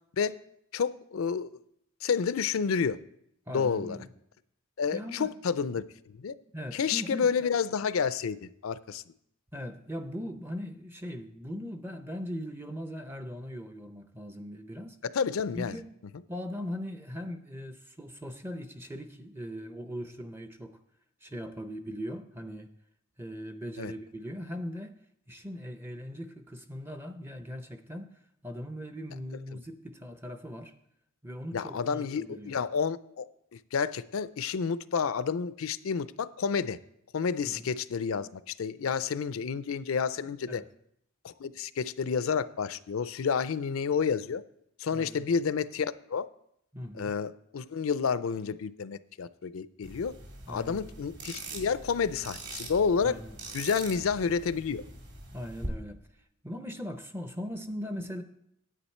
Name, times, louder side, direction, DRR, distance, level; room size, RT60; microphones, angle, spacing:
voice 1, 0.7-1.5 2.0-3.0 3.5-4.0 4.8-6.3 6.7-9.0 15.1-15.8 23.8-23.9 29.5-29.6 31.5-33.3 33.5-36.8 37.1-40.6 41.2-44.4 44.8-46.3 47.0-50.1 50.5-53.1 53.5-54.8, left 6 dB, 75° left, 16 dB, 0.4 m, -30 dB
voice 2, 3.5-4.1 4.9-5.3 6.5-7.3 9.5-15.0 15.5-15.9 16.3-20.8 21.2-22.7 23.2-24.9 25.3-30.7 31.2-32.6 37.4-37.7 40.5-40.7 44.9-45.3 46.7-47.1 50.4-51.0 53.0-53.4 55.3-58.2, equal, 10° right, 8 dB, 0.5 m, -40 dB
sound 1, 49.8-55.7, right 2 dB, 55° right, 2.4 m, -43 dB
10.0 x 8.5 x 4.3 m, 0.74 s
head